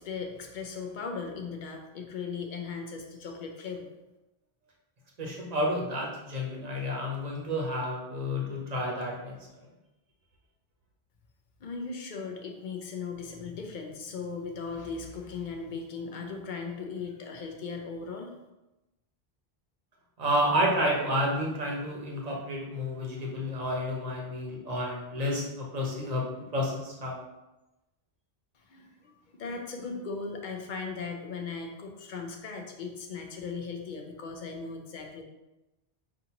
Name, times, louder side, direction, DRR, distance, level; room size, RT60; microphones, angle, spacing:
voice 1, 0.0-3.9 11.6-18.3 28.5-35.2, left 5 dB, 55° left, 3 dB, 0.7 m, -38 dB
voice 2, 5.2-9.3 20.2-27.1, equal, 40° right, -2 dB, 0.9 m, -30 dB
5.7 x 2.5 x 2.8 m, 0.99 s
omnidirectional pair, 1.0 m